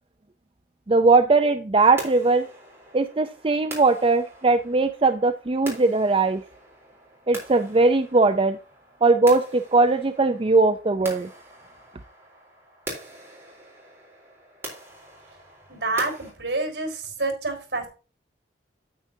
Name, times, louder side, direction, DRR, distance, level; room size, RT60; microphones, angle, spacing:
voice 1, 0.9-2.5 2.9-6.4 7.3-8.6 9.0-11.3, right 3 dB, 30° right, 7 dB, 0.5 m, -20 dB
sound 1, 2.0-16.3, right 1 dB, 15° right, 3.6 m, -43 dB
voice 2, 15.7-17.9, right 2 dB, 70° right, 3 dB, 4.3 m, -28 dB
9.4 x 8.7 x 2.7 m, 0.34 s
head